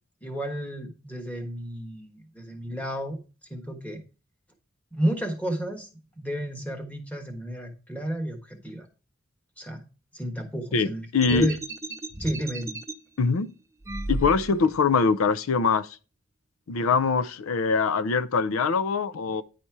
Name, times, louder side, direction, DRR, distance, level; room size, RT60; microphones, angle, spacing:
voice 1, 0.2-3.2 3.5-4.0 4.9-5.9 6.2-8.9 9.6-9.8 10.1-11.6 12.2-12.8, right 1 dB, 5° left, 1.3 m, -32 dB
voice 2, 10.7-11.5 13.2-13.5 14.1-16.0 16.7-19.4, left 5 dB, 80° left, 0.5 m, -23 dB
sound 1, 11.2-12.9 13.8-14.8, right 2 dB, 15° right, 0.5 m, -34 dB
9.9 x 4.3 x 4.6 m
head